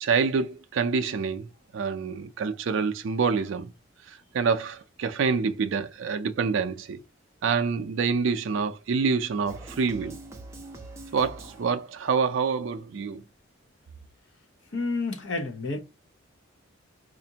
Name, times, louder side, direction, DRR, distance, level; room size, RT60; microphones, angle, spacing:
voice 1, 0.0-3.7 4.1-7.0 7.4-10.2 11.1-13.2, right 5 dB, 60° right, 0.4 m, -27 dB
sound 1, 9.5-12.1, right 2 dB, 15° right, 0.5 m, -44 dB
voice 2, 14.7-15.8, left 3 dB, 60° left, 0.8 m, -29 dB
4.2 x 2.5 x 2.7 m
head